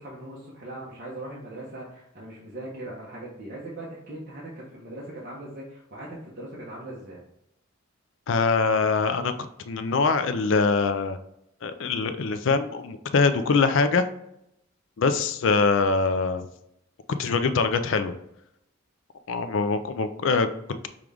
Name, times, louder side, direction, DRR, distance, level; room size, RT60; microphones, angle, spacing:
voice 1, 0.0-7.2, right 1 dB, 45° right, -6 dB, 1.0 m, -40 dB
voice 2, 8.3-11.2 11.6-14.1 15.0-16.4 17.2-18.1 19.3-20.9, left 4 dB, 60° left, 10 dB, 0.4 m, -23 dB
6.1 x 2.4 x 3.4 m, 0.78 s
head